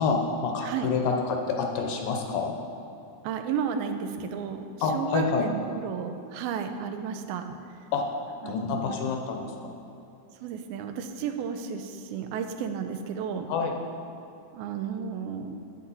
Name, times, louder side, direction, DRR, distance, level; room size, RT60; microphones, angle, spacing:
voice 1, 0.0-2.5 4.8-5.4 7.9-8.2 8.5-9.8 13.5-13.7, left 5 dB, 75° left, 2 dB, 2.2 m, -28 dB
voice 2, 3.2-7.4 8.4-8.9 10.4-13.5 14.5-15.6, right 7 dB, 90° right, 7 dB, 2.5 m, -33 dB
9.9 x 8.5 x 4.0 m, 2.8 s
omnidirectional pair, 4.3 m